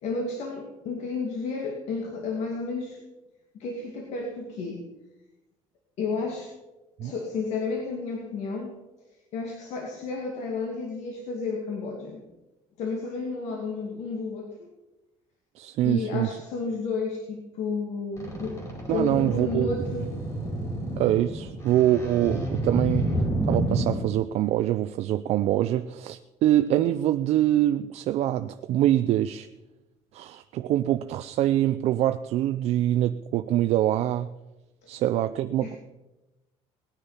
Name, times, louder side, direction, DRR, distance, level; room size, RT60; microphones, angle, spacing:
voice 1, 0.0-3.0 3.6-4.8 6.0-6.5 7.0-8.7 9.3-12.2 12.8-14.7 15.8-18.6 18.9-20.2 35.6-35.8, left 4 dB, 65° left, 1 dB, 2.3 m, -32 dB
voice 2, 15.6-16.4 18.9-19.7 21.0-23.1 23.5-29.5 30.1-34.3 34.9-35.7, right 13 dB, 60° right, 10 dB, 0.5 m, -24 dB
sound 1, 18.2-24.0, right 1 dB, 25° left, 4.5 m, -29 dB
19.0 x 9.9 x 5.7 m, 1.0 s
cardioid pair, 160°, 12 cm